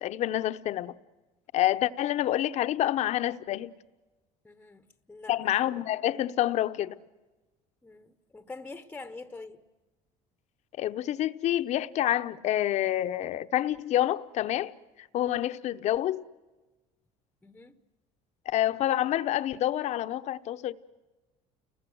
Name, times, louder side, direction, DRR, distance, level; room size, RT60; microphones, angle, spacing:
voice 1, 0.0-0.9 1.5-3.7 5.3-7.0 10.8-14.7 15.0-16.2 18.5-20.7, left 13 dB, 50° left, 0.9 m, -28 dB
voice 2, 4.4-5.5 7.8-9.6 17.4-17.8, left 3 dB, 10° left, 1.0 m, -45 dB
30.0 x 21.5 x 7.8 m
cardioid pair, 125°, 14 cm